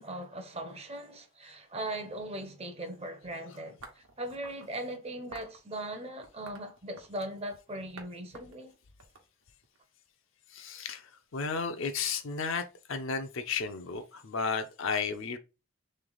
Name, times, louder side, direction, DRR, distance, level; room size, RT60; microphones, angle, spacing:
voice 1, 0.0-8.7, right 1 dB, 25° right, 0.7 m, -39 dB
sound 1, 3.8-4.7 5.3-5.6 6.2-7.4 8.0-8.1 8.3-9.8, right 3 dB, 70° right, 1.0 m, -49 dB
voice 2, 10.5-15.4, left 5 dB, 60° left, 0.5 m, -33 dB
3.3 x 3.2 x 3.9 m
head